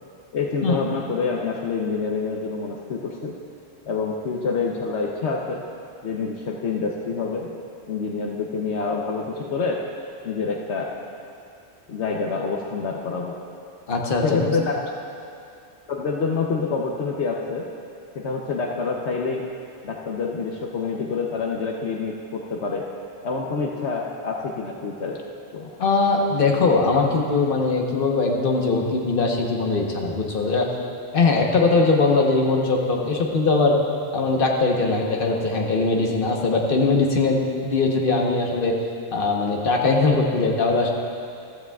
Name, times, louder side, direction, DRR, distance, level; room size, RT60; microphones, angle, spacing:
voice 1, 0.3-3.3 3.9-5.6 6.0-7.5 7.9-9.8 10.2-10.9 11.9-13.4 14.2-14.8 15.9-17.7 18.1-19.4 19.8-22.9 23.2-25.2 25.5-25.7, left 4 dB, 75° left, -1 dB, 1.1 m, -27 dB
voice 2, 13.9-14.5 25.8-30.7 31.1-33.8 34.1-38.8 39.1-40.9, left 3 dB, 55° left, 0 dB, 1.3 m, -21 dB
14.5 x 14.0 x 2.4 m, 2.5 s
omnidirectional pair, 1.2 m